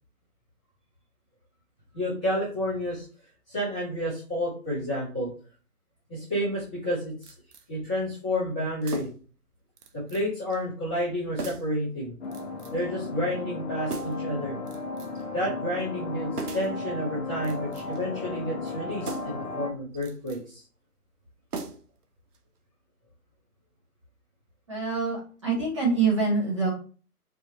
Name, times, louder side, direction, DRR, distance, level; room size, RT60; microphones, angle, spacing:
voice 1, 1.9-3.0 3.5-5.3 6.1-7.3 7.7-9.1 9.9-12.1 12.7-14.6 15.3-20.6, equal, 5° left, -19 dB, 0.8 m, -30 dB
sound 1, 7.2-7.7 8.8-9.3 9.8-10.3 10.5-10.6 11.4-11.8 12.3-12.9 13.9-14.3 14.7-15.3 16.4-16.8 17.4-18.1 19.0-19.5 19.9-20.4 21.5-22.0 22.3-22.4, right 4 dB, 75° right, 0.8 m, -39 dB
sound 2, 12.2-19.7, left 3 dB, 45° left, 0.9 m, -35 dB
voice 2, 24.7-26.7, right 4 dB, 20° right, -5 dB, 1.0 m, -25 dB
4.7 x 2.7 x 2.8 m, 0.39 s
hypercardioid pair, 165°, 46 cm